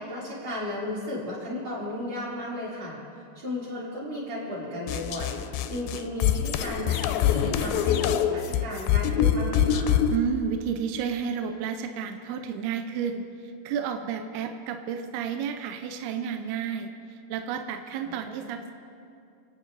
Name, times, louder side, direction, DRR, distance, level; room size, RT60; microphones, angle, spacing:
voice 1, 0.0-3.0 3.3-5.4 5.7-10.0 18.0-18.3, left 1 dB, 40° right, -8 dB, 4.8 m, -34 dB
sound 1, 4.9-10.2, left 9 dB, 85° left, 2.2 m, -24 dB
voice 2, 10.1-18.7, right 7 dB, 80° right, 6 dB, 2.6 m, -31 dB
28.0 x 9.4 x 4.1 m, 2.6 s
omnidirectional pair, 4.8 m